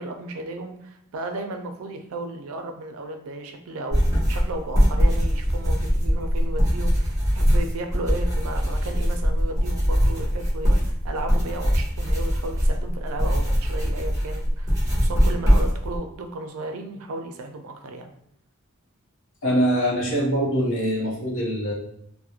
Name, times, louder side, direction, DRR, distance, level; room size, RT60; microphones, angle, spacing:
voice 1, 0.0-18.1, right 2 dB, 70° right, 5 dB, 0.4 m, -34 dB
sound 1, 3.9-16.0, equal, 15° right, 1.0 m, -22 dB
voice 2, 19.4-21.7, equal, 60° left, -3 dB, 0.8 m, -23 dB
2.9 x 2.1 x 2.3 m, 0.75 s
head